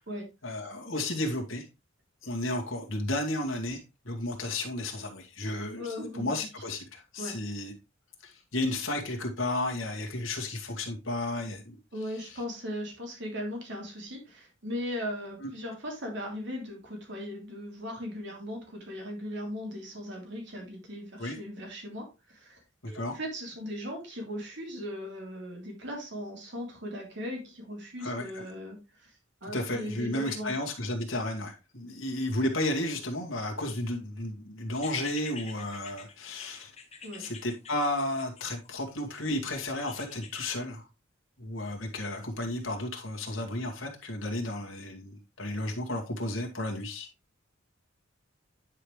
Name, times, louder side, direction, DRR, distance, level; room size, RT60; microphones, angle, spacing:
voice 1, 0.4-1.6 2.2-7.7 8.2-11.8 15.4-15.5 21.2-21.4 22.8-23.1 28.0-28.5 29.5-36.7 37.2-40.8 41.4-47.1, left 1 dB, 80° left, 2.0 m, -33 dB
voice 2, 5.8-6.4 7.2-7.3 11.9-30.5 37.0-37.3, equal, 65° right, 3.1 m, -38 dB
sound 1, 34.7-38.9 39.9-40.5, left 5 dB, 35° left, 1.2 m, -46 dB
9.8 x 5.0 x 3.2 m
head